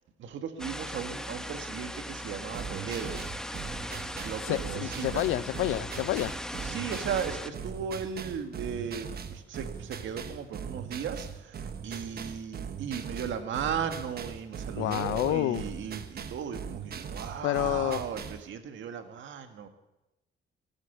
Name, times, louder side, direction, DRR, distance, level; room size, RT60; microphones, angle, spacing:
voice 1, 0.2-3.2 4.2-5.5 6.6-11.6 11.8-19.7, right 7 dB, 75° right, 7 dB, 1.8 m, -36 dB
sound 1, 0.6-7.5, equal, 5° left, 1.0 m, -39 dB
sound 2, 2.5-18.5, right 7 dB, 50° right, 1.2 m, -40 dB
voice 2, 4.5-6.3 14.8-15.6 17.4-18.0, left 15 dB, 90° left, 18 dB, 0.6 m, -29 dB
17.0 x 9.0 x 8.3 m, 0.96 s
cardioid pair, 90°, 20 cm